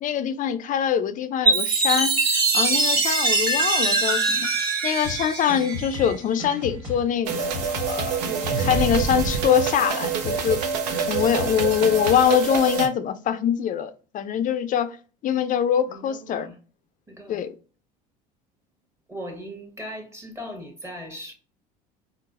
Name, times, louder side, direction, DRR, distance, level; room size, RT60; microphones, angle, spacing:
voice 1, 0.0-4.5 4.8-8.3 8.6-10.6 11.1-15.0 15.2-16.5 17.3-17.5, left 9 dB, 40° left, 0.4 m, -24 dB
Chime, 1.5-6.1, right 3 dB, 45° right, 1.3 m, -22 dB
sound 1, 5.0-12.3, left 2 dB, 65° right, 1.5 m, -35 dB
sound 2, 7.3-12.9, right 6 dB, 80° right, 0.5 m, -26 dB
voice 2, 15.9-16.5 17.1-17.5 19.1-21.3, equal, 15° right, 1.1 m, -39 dB
3.8 x 2.1 x 2.4 m
hypercardioid pair, 75°, 21 cm